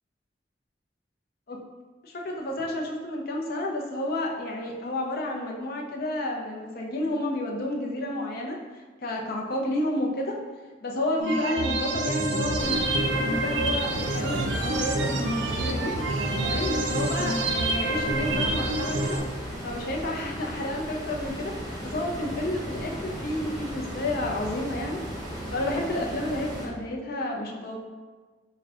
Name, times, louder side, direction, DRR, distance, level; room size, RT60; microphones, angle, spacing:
voice 1, 2.0-10.4 10.8-16.0 16.4-19.2 19.6-25.0 25.5-27.8, left 1 dB, 55° left, 0 dB, 0.5 m, -31 dB
sound 1, 11.2-19.2, right 2 dB, 75° right, 0.4 m, -27 dB
sound 2, 12.6-26.7, equal, 20° right, 1.2 m, -36 dB
3.6 x 2.2 x 3.6 m, 1.4 s
head